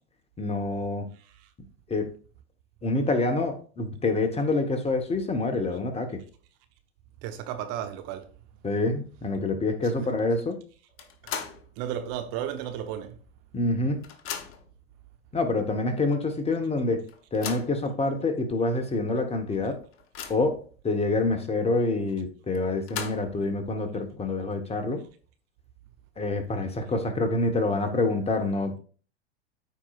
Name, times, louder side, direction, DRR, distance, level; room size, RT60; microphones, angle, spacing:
voice 1, 0.4-1.1 1.9-2.1 2.8-6.2 8.6-10.6 13.5-14.0 15.3-17.0 17.3-19.8 20.3-25.0 26.2-28.8, left 2 dB, 20° left, 1.4 m, -27 dB
voice 2, 1.2-1.5 7.2-8.3 10.0-10.1 11.8-13.2, right 10 dB, 45° right, 1.0 m, -34 dB
sound 1, 11.0-11.7 12.1-12.2 13.3-13.4 13.7-14.8 15.5-15.6 16.0-16.1 17.1-17.8 18.5-18.6 19.0-19.1 19.6-20.6 22.5-23.5, left 7 dB, 40° left, 1.1 m, -38 dB
13.5 x 4.5 x 2.5 m
hypercardioid pair, 90°, 33 cm